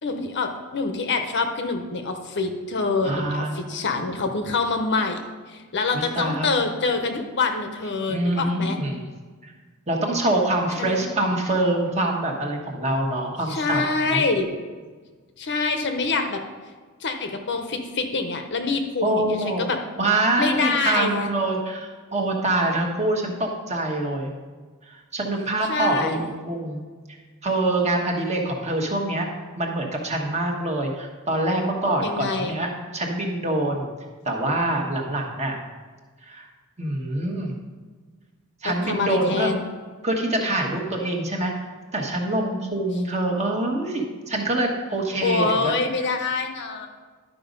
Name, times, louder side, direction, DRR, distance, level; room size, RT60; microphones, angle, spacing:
voice 1, 0.0-5.2 5.5-8.8 10.8-11.1 13.5-14.5 15.4-16.4 17.0-19.8 20.4-21.3 25.7-26.2 32.0-32.6 38.6-39.7 45.2-46.9, left 4 dB, 50° left, 6 dB, 0.8 m, -25 dB
voice 2, 3.0-3.8 5.9-6.5 8.1-9.0 9.4-9.5 9.9-14.3 19.0-19.7 20.0-24.3 24.9-26.8 27.4-29.3 29.6-33.9 34.2-35.6 36.2-36.5 36.8-37.6 38.6-39.5 40.0-41.5 41.9-45.7, right 2 dB, 30° right, 0 dB, 1.3 m, -25 dB
11.0 x 5.0 x 5.2 m, 1.4 s
head